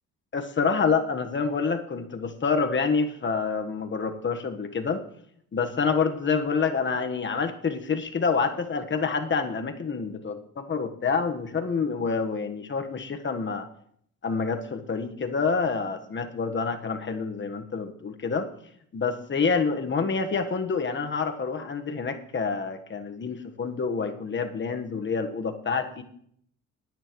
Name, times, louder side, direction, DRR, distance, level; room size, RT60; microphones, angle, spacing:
voice 1, 0.3-5.0 5.5-13.6 14.2-18.5 18.9-26.0, left 5 dB, 40° left, 6 dB, 1.4 m, -27 dB
21.0 x 9.2 x 3.1 m, 0.67 s
cardioid pair, 90°, 30 cm